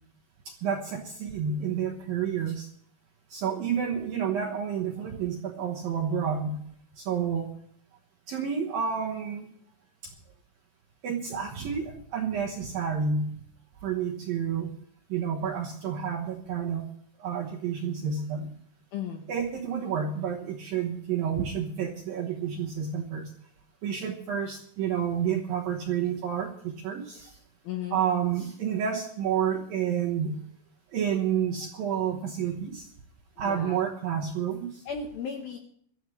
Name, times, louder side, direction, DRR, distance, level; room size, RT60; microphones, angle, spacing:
voice 1, 0.6-2.7 3.3-6.6 7.0-7.5 8.3-9.5 11.0-13.4 13.8-14.8 15.1-16.9 17.2-18.5 19.3-23.3 23.8-27.4 27.9-30.4 30.9-32.9 33.4-34.8, right 7 dB, 70° right, 0 dB, 2.2 m, -30 dB
voice 2, 18.9-19.3 27.6-28.0 33.4-33.8 34.9-35.6, left 7 dB, 75° left, 3 dB, 2.2 m, -35 dB
23.0 x 14.0 x 3.2 m, 0.65 s
omnidirectional pair, 5.8 m